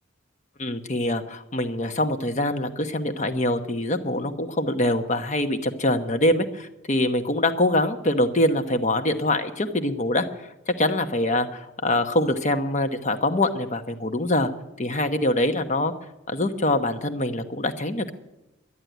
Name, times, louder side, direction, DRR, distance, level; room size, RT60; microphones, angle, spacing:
voice 1, 0.6-10.3 10.7-14.5 14.8-15.9 16.3-18.1, left 1 dB, 40° left, 8 dB, 1.1 m, -24 dB
11.5 x 11.0 x 9.2 m, 0.93 s
head